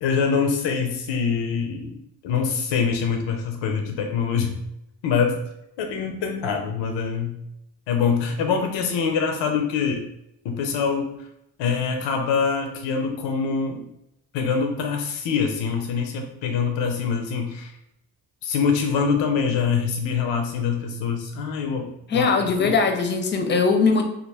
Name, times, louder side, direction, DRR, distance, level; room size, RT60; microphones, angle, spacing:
voice 1, 0.0-4.6 5.0-5.4 5.8-7.4 7.9-10.0 10.4-11.3 11.6-13.9 14.3-17.7 18.4-22.3 22.6-22.7, left 6 dB, 70° left, 4 dB, 0.6 m, -24 dB
voice 2, 22.1-24.1, left 4 dB, 25° left, 5 dB, 0.5 m, -20 dB
2.3 x 2.2 x 3.2 m, 0.83 s
supercardioid pair, 45°, 47 cm